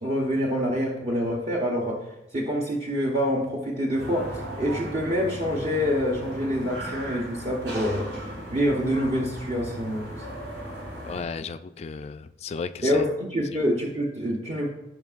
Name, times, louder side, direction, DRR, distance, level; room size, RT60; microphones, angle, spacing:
voice 1, 0.0-10.2 12.8-14.7, equal, 40° right, -2 dB, 0.9 m, -26 dB
sound 1, 3.9-11.2, right 1 dB, 75° right, 3.5 m, -37 dB
voice 2, 11.1-13.1 13.5-13.6, left 5 dB, 35° left, 11 dB, 0.3 m, -34 dB
16.5 x 5.6 x 2.4 m, 0.95 s
head